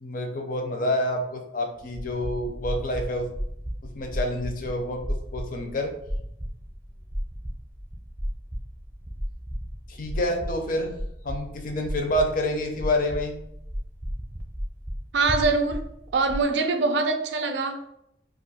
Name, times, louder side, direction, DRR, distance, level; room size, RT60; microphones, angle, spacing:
voice 1, 0.0-3.3 3.8-5.9 9.9-10.9 11.2-13.4, left 1 dB, 50° left, 0.5 m, -28 dB
sound 1, 1.8-16.4, equal, 10° right, 0.6 m, -34 dB
voice 2, 15.1-15.8 16.1-17.9, right 3 dB, 70° right, 0.4 m, -23 dB
2.5 x 2.5 x 4.1 m
head